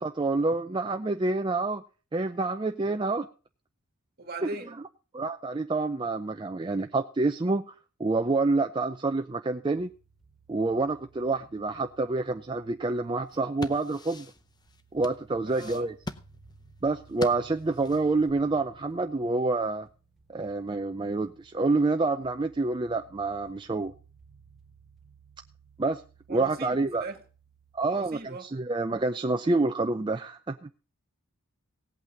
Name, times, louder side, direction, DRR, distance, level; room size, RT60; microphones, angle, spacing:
voice 1, 0.0-1.8 2.1-3.3 5.1-7.7 8.0-9.9 10.5-14.3 14.9-15.9 16.8-19.9 20.3-23.9 25.8-26.0 26.3-27.0 27.7-30.7, right 3 dB, 20° right, 0.5 m, -27 dB
voice 2, 4.2-4.7 15.5-15.9 26.3-27.2 27.9-28.5, right 3 dB, 45° right, 1.9 m, -39 dB
sound 1, 9.8-28.2, right 4 dB, ahead, 2.0 m, -59 dB
sound 2, 13.2-18.3, left 2 dB, 20° left, 0.7 m, -42 dB
17.5 x 8.5 x 3.7 m
head